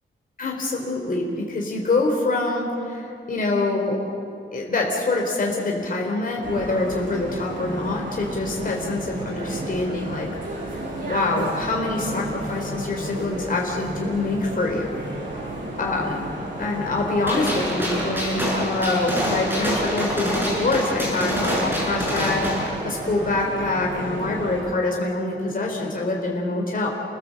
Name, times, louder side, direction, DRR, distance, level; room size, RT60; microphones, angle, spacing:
voice 1, 0.4-4.0 4.5-10.3 11.1-15.0 15.8-16.3 16.6-26.9, left 2 dB, 45° left, -1 dB, 3.6 m, -25 dB
sound 1, 6.4-24.6, right 1 dB, 45° right, 7.8 m, -33 dB
Gunshot gunfire, 17.3-22.7, equal, 10° right, 7.6 m, -26 dB
30.0 x 20.0 x 7.6 m, 2.5 s
wide cardioid pair, 160°, 20 cm